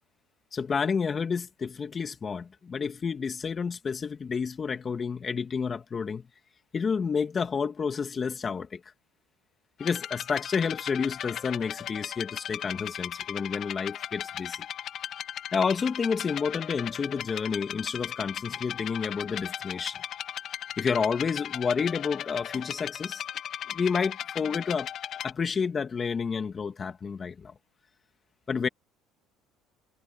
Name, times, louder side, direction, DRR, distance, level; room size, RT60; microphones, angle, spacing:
voice 1, 0.5-6.2 6.7-8.8 9.8-14.7 15.5-20.0 20.8-23.2 23.7-24.9 25.2-27.5 28.5-28.7, left 5 dB, 30° left, 2.2 m, -30 dB
sound 1, 9.8-25.3, left 10 dB, 55° left, 2.3 m, -37 dB
supercardioid pair, 100°, 0 cm